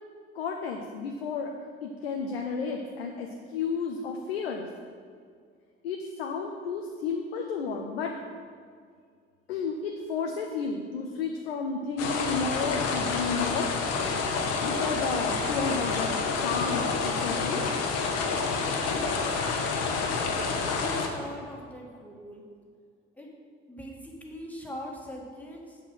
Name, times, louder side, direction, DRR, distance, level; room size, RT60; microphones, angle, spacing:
voice 1, 0.3-1.5 1.8-4.7 5.8-8.1 9.5-13.7 14.6-17.7, left 5 dB, 75° left, 2 dB, 0.7 m, -32 dB
sound 1, 12.0-21.1, left 4 dB, 55° left, 1.1 m, -28 dB
voice 2, 20.7-22.4 23.2-23.3 23.7-25.8, equal, 5° left, -2 dB, 2.3 m, -41 dB
8.1 x 7.2 x 5.7 m, 2.1 s
figure-of-eight pair, 55°, 30 cm